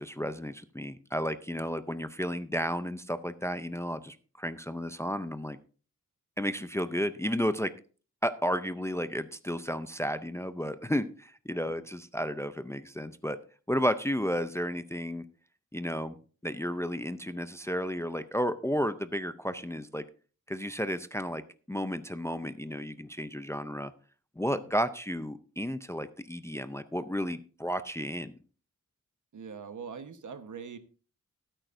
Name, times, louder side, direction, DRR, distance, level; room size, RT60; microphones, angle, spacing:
voice 1, 0.0-5.6 6.4-7.7 8.2-13.4 13.7-15.2 15.7-16.2 16.4-20.0 20.5-21.4 21.7-23.9 24.4-28.4, equal, 10° left, 12 dB, 0.4 m, -32 dB
voice 2, 29.3-30.8, right 6 dB, 70° right, 10 dB, 1.2 m, -43 dB
17.0 x 9.0 x 2.6 m, 0.38 s
wide cardioid pair, 130°, 32 cm